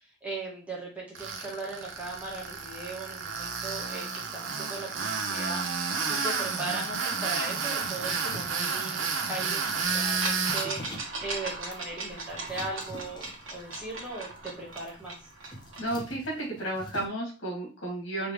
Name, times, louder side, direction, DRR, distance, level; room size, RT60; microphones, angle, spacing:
voice 1, 0.2-5.6 6.1-15.2, right 2 dB, 5° right, -6 dB, 1.8 m, -38 dB
Tools, 1.2-10.7, right 5 dB, 65° right, 0.9 m, -31 dB
sound 1, 7.8-17.1, equal, 20° left, 0.8 m, -47 dB
sound 2, 9.6-9.7 10.2-15.9, right 3 dB, 80° right, 1.3 m, -38 dB
voice 2, 15.8-18.3, right 1 dB, 70° left, -1 dB, 2.2 m, -32 dB
5.0 x 3.3 x 3.1 m, 0.33 s
head